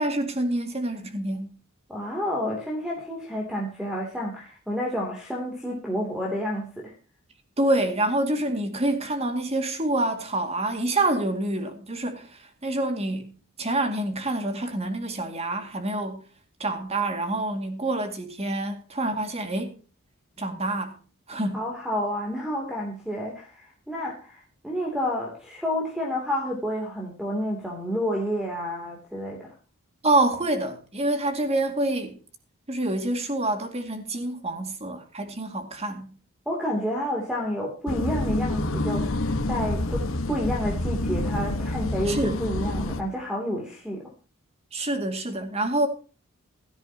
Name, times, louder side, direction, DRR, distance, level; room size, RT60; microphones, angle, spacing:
voice 1, 0.0-1.5 7.6-16.2 16.6-19.8 20.4-21.0 21.3-21.6 30.0-32.2 32.7-36.2 42.1-42.4 44.7-45.9, right 2 dB, 30° right, 2.2 m, -27 dB
voice 2, 1.9-6.9 21.5-29.5 36.5-44.1, equal, 5° right, 2.9 m, -30 dB
sound 1, 37.9-43.0, left 2 dB, 65° left, 1.4 m, -27 dB
16.5 x 13.0 x 2.9 m
head